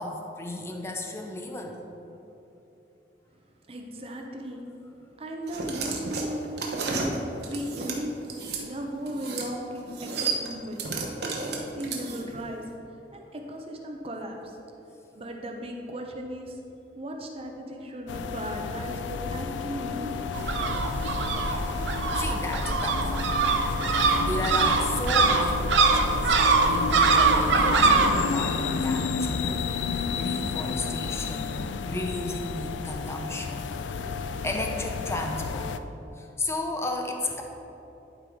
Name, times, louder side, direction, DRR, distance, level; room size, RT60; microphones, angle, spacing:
voice 1, 0.0-1.8 21.4-21.6 22.1-23.3 24.2-29.6 29.9-35.8 36.2-37.4, left 1 dB, 15° left, 2 dB, 0.6 m, -34 dB
voice 2, 3.7-4.6 5.2-7.2 7.5-8.2 8.7-10.9 11.7-12.6 13.1-14.5 15.1-16.6 16.9-20.3, right 1 dB, 35° right, 2 dB, 0.7 m, -36 dB
sound 1, 5.5-8.6 9.1-9.5 9.8-12.4, right 4 dB, 60° right, 1.0 m, -32 dB
sound 2, 18.1-35.8, left 5 dB, 85° left, 0.4 m, -31 dB
sound 3, 20.3-28.1, right 4 dB, 80° right, 0.7 m, -23 dB
11.5 x 3.9 x 4.6 m, 2.9 s
head